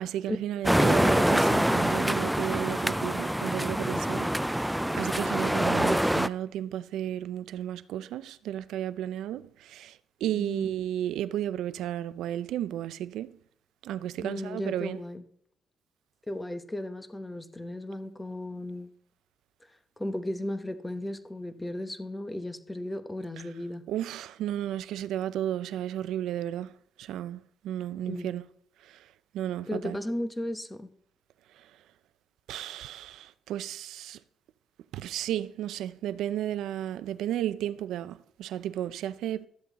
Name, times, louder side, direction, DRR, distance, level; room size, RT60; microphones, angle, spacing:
voice 1, 0.0-4.3 4.5-4.7 4.9-9.9 10.2-13.3 13.8-15.0 23.9-26.7 27.0-27.4 27.6-28.4 29.3-30.0 32.5-34.2 34.9-39.5, right 11 dB, 85° right, 0.4 m, -33 dB
sound 1, 0.6-6.3, equal, 5° right, 0.3 m, -25 dB
voice 2, 10.3-10.7 14.2-15.2 16.3-18.9 20.0-23.8 28.0-28.3 29.7-30.9, left 1 dB, 10° left, 1.0 m, -35 dB
12.5 x 7.6 x 4.0 m
cardioid pair, 90°, 0 cm